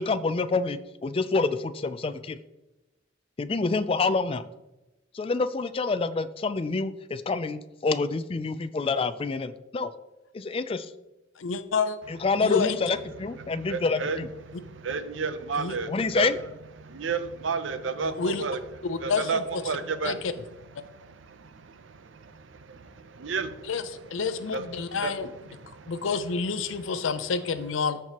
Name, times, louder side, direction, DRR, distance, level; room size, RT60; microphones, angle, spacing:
voice 1, 0.0-2.4 3.4-4.4 5.1-9.9 10.3-10.9 12.1-14.3 15.9-16.4, left 4 dB, 30° left, 12 dB, 0.3 m, -27 dB
voice 2, 11.4-12.0 12.4-12.8 15.6-15.7 18.0-18.4 18.8-19.6 20.0-20.3 23.7-23.8 24.1-25.3 25.9-28.0, left 5 dB, 85° left, 11 dB, 0.5 m, -28 dB
voice 3, 13.4-14.2 14.5-16.5 16.8-18.6 19.0-20.3 20.8-24.2 24.5-26.1, right 5 dB, 75° right, 11 dB, 0.6 m, -33 dB
13.5 x 4.6 x 2.9 m, 1.0 s
head